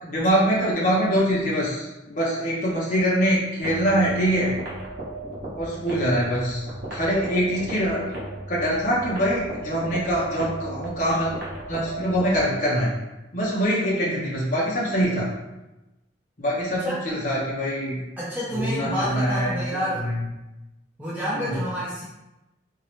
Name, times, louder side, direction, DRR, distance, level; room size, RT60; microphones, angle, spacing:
voice 1, 0.0-4.5 5.5-6.7 6.9-8.1 8.5-11.4 11.7-12.9 13.3-15.3 16.4-18.0 18.5-19.6 20.0-20.2 21.3-21.6, equal, 45° left, -6 dB, 0.8 m, -24 dB
sound 1, 3.6-12.6, right 1 dB, 55° right, 0.9 m, -36 dB
voice 2, 18.2-20.1 21.0-22.0, equal, 10° right, -9 dB, 0.5 m, -28 dB
2.9 x 2.8 x 3.1 m, 0.99 s
head